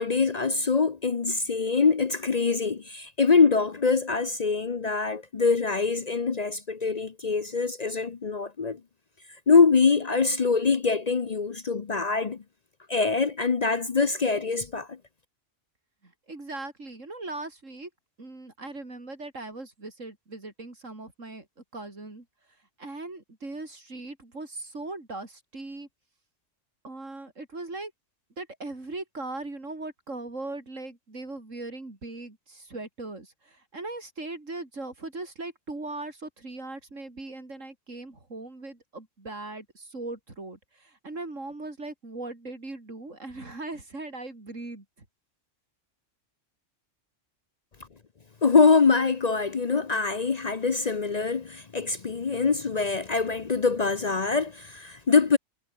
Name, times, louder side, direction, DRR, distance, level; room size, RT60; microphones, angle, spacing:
voice 1, 0.0-8.8 9.5-12.4 12.9-15.0 48.4-55.4, left 4 dB, 40° left, 0.8 m, -24 dB
voice 2, 16.0-17.9 18.2-21.5 21.7-22.3 22.8-25.9 26.8-27.9 28.4-44.8, right 2 dB, 85° right, 5.0 m, -39 dB
omnidirectional pair, 1.3 m